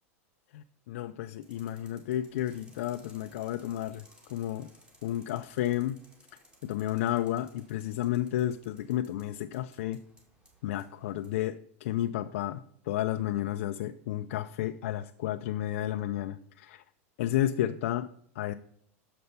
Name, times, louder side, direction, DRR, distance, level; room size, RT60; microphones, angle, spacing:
voice 1, 0.5-4.7 5.0-6.0 6.6-10.0 10.6-16.8 17.2-18.1 18.4-18.5, left 12 dB, 70° left, 8 dB, 0.4 m, -32 dB
sound 1, 1.4-11.4, right 1 dB, 10° right, 2.1 m, -61 dB
6.8 x 5.4 x 6.6 m, 0.67 s
supercardioid pair, 140°, 8 cm